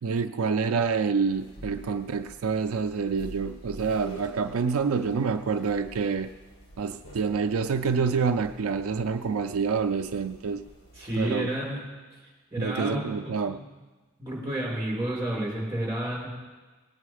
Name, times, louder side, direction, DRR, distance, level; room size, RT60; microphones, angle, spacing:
voice 1, 0.0-6.3 6.8-10.6 11.1-11.5 12.6-13.6, right 5 dB, 75° right, 8 dB, 0.4 m, -27 dB
sound 1, 1.3-11.3, right 1 dB, 85° left, 4.1 m, -48 dB
voice 2, 10.9-11.8 12.5-13.0 13.5-13.6 14.2-16.3, right 1 dB, 15° right, -4 dB, 4.9 m, -30 dB
19.0 x 9.2 x 4.9 m, 1.3 s
head